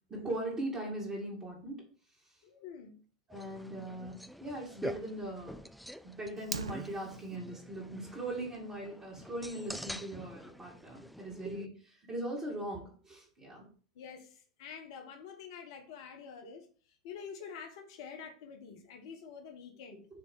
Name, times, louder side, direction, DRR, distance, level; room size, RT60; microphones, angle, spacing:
voice 1, 0.1-1.9 3.3-5.6 6.0-13.7, right 1 dB, 20° right, 2.2 m, -40 dB
voice 2, 2.4-3.0 13.9-20.1, left 6 dB, 55° left, 1.1 m, -47 dB
sound 1, 3.3-11.7, equal, ahead, 0.3 m, -47 dB
Fire, 6.4-7.4, right 5 dB, 80° right, 0.4 m, -41 dB
6.9 x 3.2 x 4.8 m
figure-of-eight pair, 90°, 3 cm